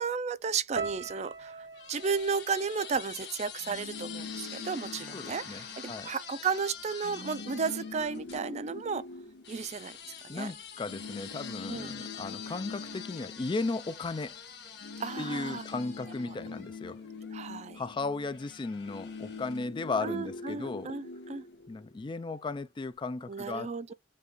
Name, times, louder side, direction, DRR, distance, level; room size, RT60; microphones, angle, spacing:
voice 1, 0.0-9.1 9.5-9.9 10.2-10.5 11.7-11.9 15.0-15.6 17.3-17.8 20.0-21.4 23.3-23.9, right 5 dB, 40° right, 0.4 m, -33 dB
sound 1, 0.8-5.0 5.2-6.0 6.6-6.8, right 4 dB, 80° right, 0.9 m, -44 dB
sound 2, 1.1-8.5 9.4-17.4 18.2-19.8, left 8 dB, 65° left, 1.6 m, -46 dB
sound 3, 3.6-6.2 6.5-6.6 6.9-10.3 10.8-14.4 14.6-22.3, left 3 dB, 85° left, 0.9 m, -44 dB
voice 2, 5.1-6.1 10.3-14.4 15.2-17.0 17.7-20.9 21.7-23.9, left 3 dB, 25° left, 0.3 m, -36 dB
5.3 x 2.4 x 3.8 m
head